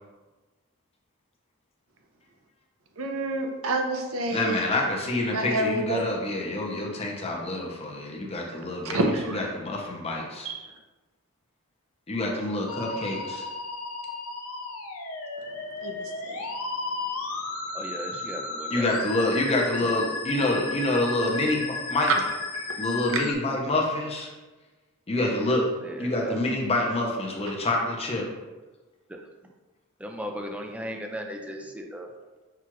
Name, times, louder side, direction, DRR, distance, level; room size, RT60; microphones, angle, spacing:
voice 1, 3.0-4.6 5.3-6.0 8.8-9.5 10.4-10.6 15.8-16.5 22.5-22.7, right 1 dB, 75° right, 3 dB, 0.6 m, -28 dB
voice 2, 4.3-9.0 9.3-10.5 12.1-13.5 18.7-22.1 22.8-24.3 25.1-25.7 26.0-28.2, left 2 dB, 30° left, -1 dB, 0.6 m, -27 dB
Musical instrument, 12.7-23.3, left 3 dB, 90° left, 0.6 m, -34 dB
voice 3, 17.7-19.3 19.8-19.9 25.8-26.4 29.1-29.2 30.0-32.1, equal, 5° right, 2 dB, 0.3 m, -37 dB
5.8 x 2.4 x 3.0 m, 1.2 s
head